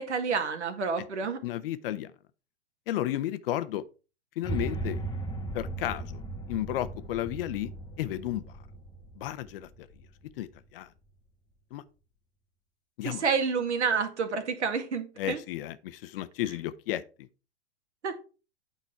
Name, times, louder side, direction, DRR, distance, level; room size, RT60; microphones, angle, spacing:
voice 1, 0.0-1.4 13.0-15.4 18.0-18.1, right 5 dB, 80° right, 2.1 m, -29 dB
voice 2, 1.4-2.1 2.9-3.8 4.4-5.0 5.5-6.2 6.5-7.7 8.0-8.4 9.2-9.9 10.4-10.9 11.7-11.8 13.0-13.2 15.2-17.0, left 13 dB, 55° left, 0.9 m, -33 dB
sound 1, 4.4-10.6, right 2 dB, 10° left, 1.3 m, -37 dB
9.1 x 5.5 x 4.5 m
hypercardioid pair, 110°, 34 cm